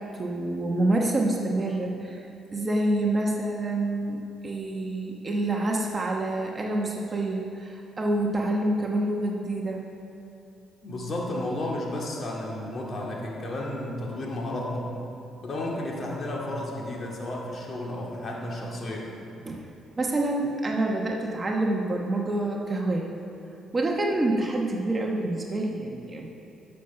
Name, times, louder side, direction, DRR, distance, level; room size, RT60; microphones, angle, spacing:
voice 1, 0.0-2.2 2.5-9.8 19.5-19.7 20.0-23.1 23.7-26.3, right 2 dB, 30° right, 0 dB, 1.1 m, -27 dB
voice 2, 10.8-14.9 15.4-19.2, left 1 dB, 45° left, -2 dB, 2.2 m, -32 dB
11.0 x 6.7 x 5.8 m, 2.7 s
cardioid pair, 90°, 0 cm